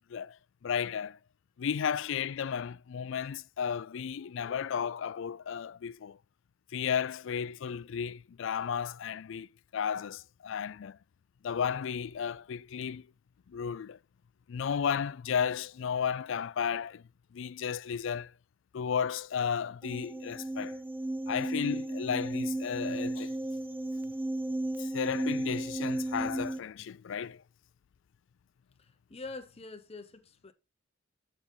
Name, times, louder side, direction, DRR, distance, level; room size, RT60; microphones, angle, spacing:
voice 1, 0.1-1.2 1.6-6.2 6.7-11.0 11.4-13.1 13.5-14.0 14.5-18.3 18.7-20.8 21.3-23.4 24.8-27.4, left 7 dB, 65° left, 0.4 m, -34 dB
sound 1, 19.8-26.6, right 1 dB, 10° right, 0.5 m, -34 dB
voice 2, 29.1-30.5, left 3 dB, 30° left, 1.0 m, -44 dB
7.1 x 6.7 x 5.4 m
head